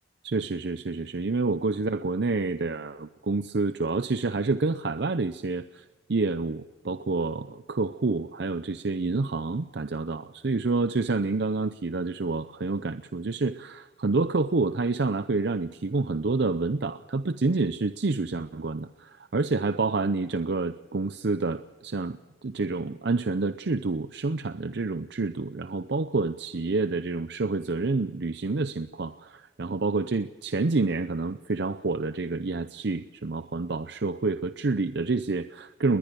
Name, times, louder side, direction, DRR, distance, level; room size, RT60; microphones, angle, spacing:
voice 1, 0.2-36.0, right 3 dB, 60° right, 11 dB, 0.6 m, -28 dB
21.0 x 19.5 x 6.8 m, 1.3 s
head